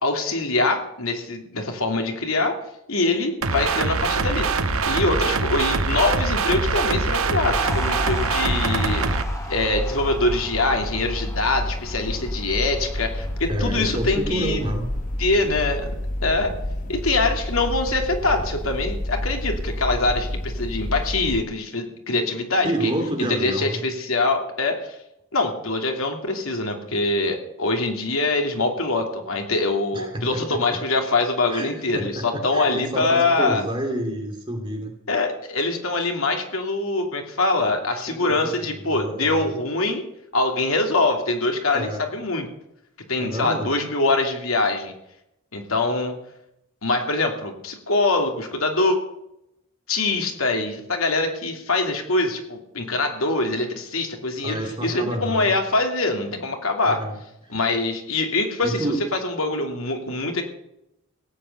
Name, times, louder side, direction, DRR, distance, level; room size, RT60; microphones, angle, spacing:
voice 1, 0.0-2.6 2.9-4.5 4.9-9.2 9.5-14.6 15.2-15.9 16.2-16.5 16.9-22.9 23.2-25.0 25.3-33.6 35.1-40.0 40.3-42.5 43.1-44.9 45.5-46.1 46.8-49.0 49.9-57.0 57.5-60.4, left 2 dB, 75° left, 3 dB, 2.7 m, -24 dB
sound 1, 3.4-9.2, right 4 dB, 75° right, 1.2 m, -24 dB
sound 2, 4.0-21.4, left 1 dB, 35° left, 0.9 m, -30 dB
sound 3, 7.5-14.0, left 1 dB, 15° left, 3.1 m, -37 dB
voice 2, 13.5-14.9 22.6-23.8 29.9-30.8 31.5-34.9 38.1-39.5 41.7-42.0 43.2-43.7 54.4-55.6 56.9-57.2 57.4-57.5 58.6-59.0, right 1 dB, 25° right, 2 dB, 3.1 m, -29 dB
17.0 x 8.3 x 8.2 m, 0.83 s
head